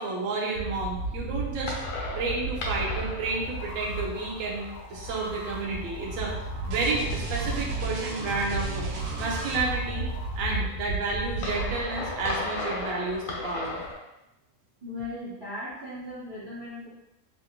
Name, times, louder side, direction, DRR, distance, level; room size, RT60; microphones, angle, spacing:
voice 1, 0.0-1.7 2.2-6.4 6.7-8.9 9.2-10.1 10.4-13.8, right 3 dB, 65° right, -2 dB, 1.0 m, -31 dB
sound 1, 0.5-13.9, right 1 dB, 85° left, 1.2 m, -33 dB
sound 2, 3.3-10.6, left 2 dB, 55° left, 0.7 m, -43 dB
sound 3, 6.7-9.9, right 3 dB, 90° right, 1.1 m, -38 dB
voice 2, 14.8-16.9, left 1 dB, 30° right, -8 dB, 0.5 m, -37 dB
3.1 x 2.4 x 2.9 m, 0.93 s
omnidirectional pair, 1.6 m